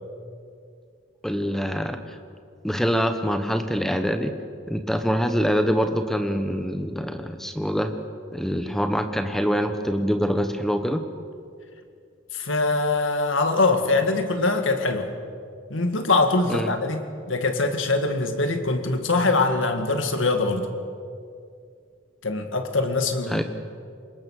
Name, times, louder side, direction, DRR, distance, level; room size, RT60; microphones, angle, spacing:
voice 1, 1.2-2.0 2.6-4.3 4.7-7.9 8.3-11.0 16.5-16.7 23.3-23.4, equal, ahead, 7 dB, 1.1 m, -24 dB
voice 2, 12.3-15.1 15.7-20.7 22.2-23.4, left 3 dB, 80° left, 6 dB, 2.0 m, -23 dB
25.5 x 21.5 x 6.5 m, 2.3 s
head